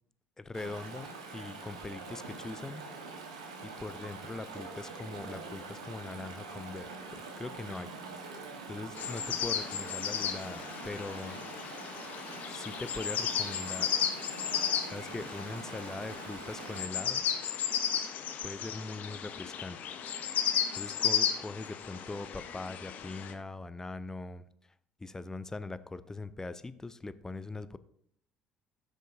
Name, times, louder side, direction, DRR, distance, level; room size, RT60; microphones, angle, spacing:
voice 1, 0.4-2.8 3.6-6.8 7.1-7.9 8.7-11.4 12.5-13.9 14.8-17.2 18.4-19.8 20.8-24.4 25.0-27.8, left 3 dB, 15° left, 14 dB, 0.5 m, -41 dB
Chatter / Stream, 0.5-16.9, right 4 dB, 80° right, 1.2 m, -45 dB
sound 1, 9.0-23.3, left 8 dB, 55° left, 1.0 m, -34 dB
14.5 x 6.4 x 2.7 m, 0.67 s
hypercardioid pair, 60°, 3 cm